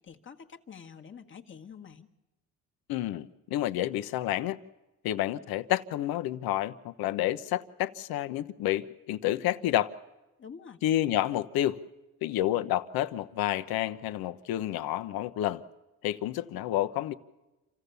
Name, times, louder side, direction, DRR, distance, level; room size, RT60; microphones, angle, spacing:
voice 1, 0.0-2.1 10.4-10.8, left 6 dB, 30° left, 1.4 m, -47 dB
voice 2, 2.9-4.6 5.0-9.9 10.8-11.8 12.2-15.6 16.0-17.1, left 13 dB, 70° left, 1.0 m, -29 dB
27.5 x 15.0 x 6.9 m
cardioid pair, 115°, 38 cm